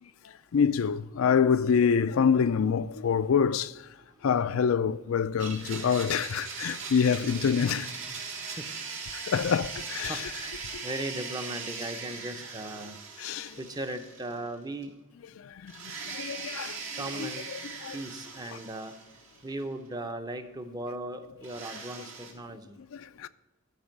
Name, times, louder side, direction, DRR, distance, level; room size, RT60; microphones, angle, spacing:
voice 1, 0.0-3.9 4.2-7.9 9.1-10.3 10.7-10.8 13.2-13.6 15.4-18.0 22.9-23.3, left 6 dB, 80° left, 0.4 m, -27 dB
Domestic sounds home sounds, 5.4-14.6 14.8-14.9 15.7-19.6 21.4-22.3, right 5 dB, 70° right, 2.2 m, -40 dB
voice 2, 10.1-13.0 13.6-14.9 17.0-17.5 17.9-18.9 19.4-22.8, right 1 dB, 20° right, 0.7 m, -37 dB
13.5 x 5.3 x 5.3 m
head